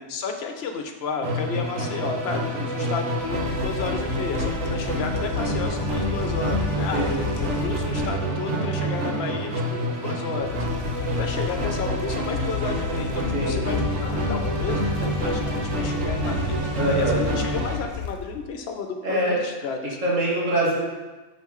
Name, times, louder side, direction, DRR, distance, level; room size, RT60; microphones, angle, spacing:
voice 1, 0.1-20.0, left 5 dB, 65° left, 4 dB, 0.8 m, -33 dB
Musical instrument, 1.2-17.9, right 1 dB, 70° right, 1.3 m, -27 dB
sound 1, 3.2-8.4 10.4-18.5, left 7 dB, 90° left, 0.9 m, -32 dB
voice 2, 6.9-7.2 13.3-13.6 16.8-17.2 19.0-19.4 20.0-20.8, right 1 dB, 85° right, -7 dB, 2.2 m, -23 dB
5.6 x 5.5 x 3.1 m, 1.2 s
omnidirectional pair, 1.3 m